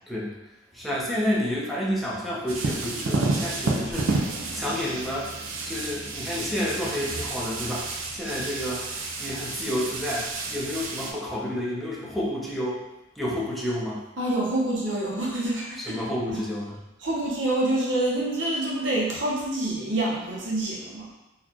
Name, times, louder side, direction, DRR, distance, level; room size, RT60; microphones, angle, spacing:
voice 1, 0.7-4.3 4.5-8.9 9.2-12.8 13.2-14.0 15.9-16.8, left 1 dB, ahead, -7 dB, 0.7 m, -30 dB
sound 1, 2.5-11.1, right 3 dB, 90° right, 0.6 m, -30 dB
voice 2, 14.2-16.0 16.3-16.4 17.0-21.1, right 1 dB, 65° right, -3 dB, 0.9 m, -27 dB
4.0 x 2.4 x 2.9 m, 0.98 s
head